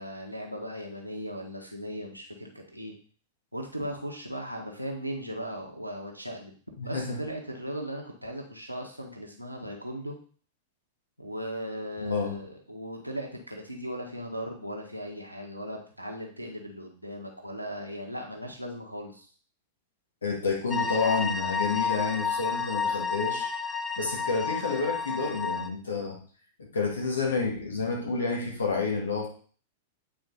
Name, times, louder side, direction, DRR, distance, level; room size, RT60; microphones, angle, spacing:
voice 1, 0.0-2.9 3.5-6.5 6.8-10.2 11.2-19.3, equal, 90° right, 0 dB, 1.4 m, -37 dB
voice 2, 6.8-7.2 12.0-12.4 20.2-23.5 24.0-26.2 26.6-29.3, left 4 dB, 70° left, 0 dB, 2.0 m, -29 dB
sound 1, 20.7-25.7, left 5 dB, 10° left, 0.6 m, -31 dB
8.7 x 4.4 x 4.1 m, 0.43 s
figure-of-eight pair, 95°, 0 cm